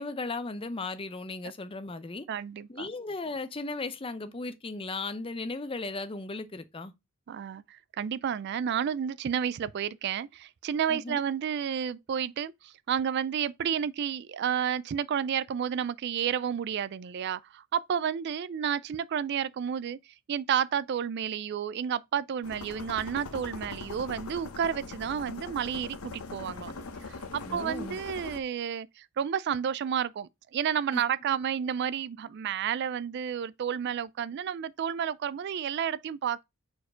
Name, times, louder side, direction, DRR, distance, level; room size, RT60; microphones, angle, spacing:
voice 1, 0.0-2.3 2.7-6.9 10.9-11.2 27.4-28.0 30.9-31.0, left 3 dB, 25° left, 0.6 m, -36 dB
voice 2, 2.3-2.9 7.3-26.7 27.0-36.4, right 8 dB, 50° right, 0.3 m, -31 dB
sound 1, 22.4-28.4, left 3 dB, 85° left, 1.0 m, -41 dB
4.6 x 4.3 x 4.9 m
head